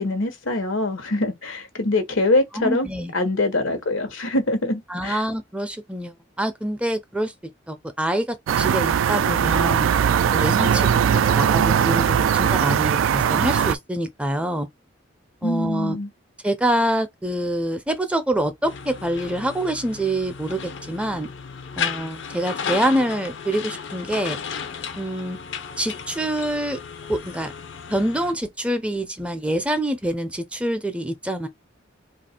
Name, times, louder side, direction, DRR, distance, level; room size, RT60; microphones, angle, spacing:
voice 1, 0.0-5.2 15.4-16.1, left 2 dB, 85° left, 1.1 m, -24 dB
voice 2, 2.6-3.1 4.9-7.3 7.7-9.9 10.3-14.7 15.4-16.0 16.4-21.3 21.8-24.4 25.0-25.4 25.8-26.8 27.1-27.5 27.9-31.5, right 1 dB, 5° right, 0.4 m, -26 dB
sound 1, 8.5-13.7, right 8 dB, 85° right, 0.3 m, -20 dB
sound 2, 18.6-28.3, left 6 dB, 65° left, 0.6 m, -34 dB
2.8 x 2.5 x 4.2 m
head